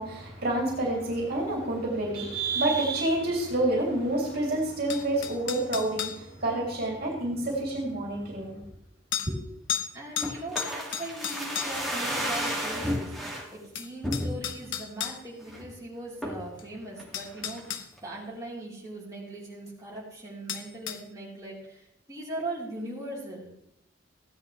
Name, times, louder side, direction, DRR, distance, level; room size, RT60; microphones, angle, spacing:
voice 1, 0.0-8.6 9.3-9.4, right 1 dB, 55° right, -2 dB, 3.0 m, -28 dB
sound 1, 4.9-6.2 7.7-7.8 9.1-9.3 9.7-9.9 10.2-11.9 13.3-13.4 13.8-15.2 16.6-16.7 17.1-17.9 20.5-21.0, left 9 dB, 80° left, 0.9 m, -33 dB
voice 2, 9.9-13.1 13.5-23.5, right 1 dB, 20° right, -6 dB, 3.7 m, -40 dB
sound 2, 10.2-13.5 14.0-14.7 15.1-15.2 15.4-15.7 16.2-16.5 17.0-17.7 18.0-18.1, equal, ahead, 2.1 m, -32 dB
16.0 x 10.0 x 3.2 m, 0.75 s
head